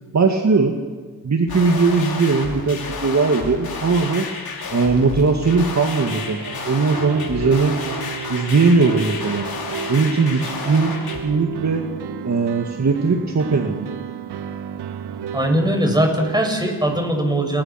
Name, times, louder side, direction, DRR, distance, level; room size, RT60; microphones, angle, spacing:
voice 1, 0.1-0.8 1.2-4.3 4.7-7.8 8.3-9.5 9.9-10.9 11.2-11.8 12.2-13.9, right 4 dB, 45° right, 3 dB, 2.5 m, -19 dB
sound 1, 1.5-11.2, left 4 dB, 65° left, 5.9 m, -31 dB
sound 2, 6.1-16.5, right 8 dB, 85° right, 1.4 m, -33 dB
voice 2, 15.3-17.6, right 1 dB, 10° right, 3 dB, 7.5 m, -20 dB
29.0 x 20.5 x 6.2 m, 1.5 s
supercardioid pair, 50°, 40 cm